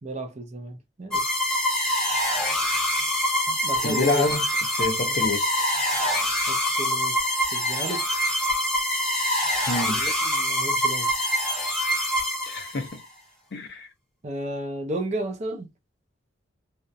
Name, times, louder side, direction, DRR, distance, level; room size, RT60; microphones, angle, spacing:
voice 1, 0.0-1.3 3.5-4.2 5.1-5.3 6.5-7.2 7.5-8.1 9.9-11.1 14.2-15.7, right 1 dB, 35° right, 0.4 m, -33 dB
sound 1, 1.1-12.9, left 1 dB, 5° left, 0.8 m, -25 dB
voice 2, 3.8-4.4 4.7-5.5 9.7-10.0 12.5-13.0 13.5-13.9, left 3 dB, 55° left, 0.5 m, -27 dB
2.6 x 2.1 x 2.3 m
head